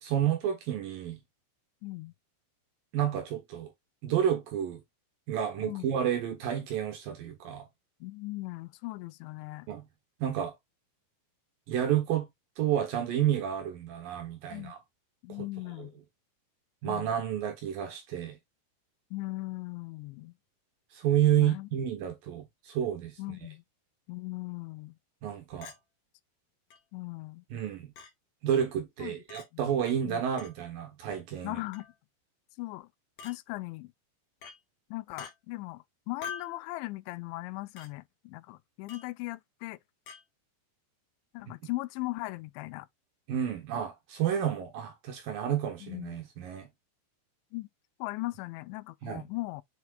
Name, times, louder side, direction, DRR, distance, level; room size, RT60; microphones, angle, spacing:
voice 1, 0.0-1.2 2.9-3.7 4.0-4.8 5.3-7.7 9.7-9.8 10.2-10.6 11.7-12.3 12.6-14.8 15.4-15.5 15.8-15.9 16.8-18.4 20.9-23.2 25.2-25.7 27.5-27.9 28.4-31.6 43.3-46.7 49.0-49.2, right 10 dB, 70° right, 2.3 m, -30 dB
voice 2, 1.8-2.1 5.6-5.9 8.0-9.7 14.5-14.7 15.2-16.0 16.8-17.1 19.1-20.3 21.4-21.7 23.2-23.6 24.1-25.0 26.9-27.4 29.0-29.2 29.5-29.6 30.1-30.2 31.4-31.9 32.6-32.9 33.2-33.9 34.9-39.8 41.3-42.9 45.8-46.2 47.5-47.7 48.0-49.6, left 21 dB, 90° left, 3.0 m, -38 dB
Chink clink, 25.6-25.8 26.7-26.8 28.0-28.1 29.3-29.5 30.4-30.6 31.7-32.0 33.2-33.4 34.4-34.6 35.2-35.3 36.2-36.6 37.8-37.9 38.9-39.1 40.1-40.2, left 6 dB, 60° left, 3.1 m, -43 dB
7.5 x 5.9 x 2.3 m
omnidirectional pair, 5.2 m